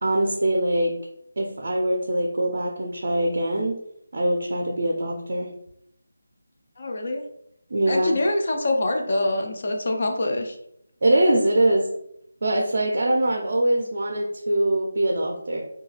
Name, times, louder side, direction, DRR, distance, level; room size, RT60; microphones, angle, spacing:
voice 1, 0.0-0.9 1.4-3.8 4.1-5.5 7.7-8.1 11.0-11.9 12.4-15.6, right 1 dB, 45° right, 1 dB, 0.4 m, -23 dB
voice 2, 6.8-7.2 7.9-10.6, left 1 dB, 35° left, 3 dB, 0.4 m, -25 dB
2.7 x 2.2 x 3.1 m, 0.75 s
figure-of-eight pair, 175°, 0 cm